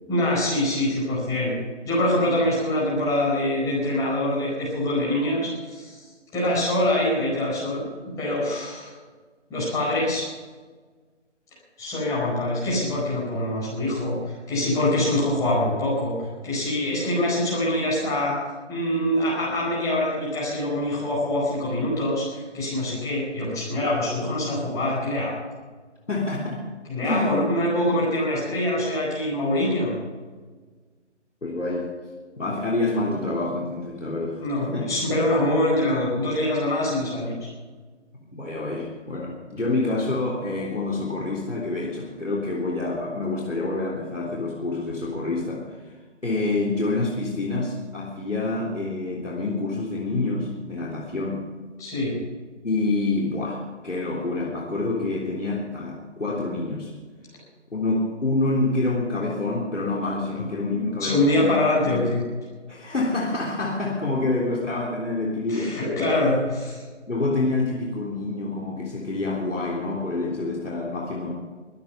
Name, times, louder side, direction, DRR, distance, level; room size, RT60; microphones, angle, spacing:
voice 1, 0.1-1.5 1.8-6.0 6.3-8.9 9.5-10.3 11.8-16.1 16.4-18.4 18.7-25.4 26.9-30.0 34.4-37.5 51.8-52.2 60.6-62.2 65.5-66.8, left 1 dB, 10° left, -7 dB, 4.6 m, -24 dB
voice 2, 26.1-26.6 27.0-27.5 31.4-31.9 32.4-34.9 38.3-45.7 46.2-51.4 52.6-56.9 57.7-61.5 61.8-61.9 62.7-66.0 67.1-71.3, left 2 dB, 85° left, -3 dB, 3.5 m, -27 dB
23.5 x 8.9 x 5.7 m, 1.4 s
figure-of-eight pair, 150°, 36 cm